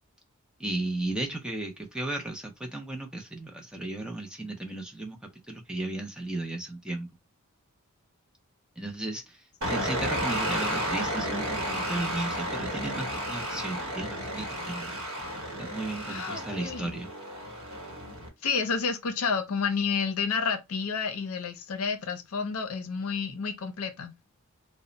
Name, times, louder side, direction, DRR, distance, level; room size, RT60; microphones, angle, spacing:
voice 1, 0.6-5.2 5.5-7.1 8.8-14.9 15.6-17.1, right 2 dB, 5° right, 0.4 m, -35 dB
sound 1, 9.6-18.3, equal, 65° right, 0.9 m, -32 dB
voice 2, 16.1-16.9 18.4-24.1, left 5 dB, 75° left, 0.5 m, -30 dB
2.0 x 2.0 x 3.7 m
head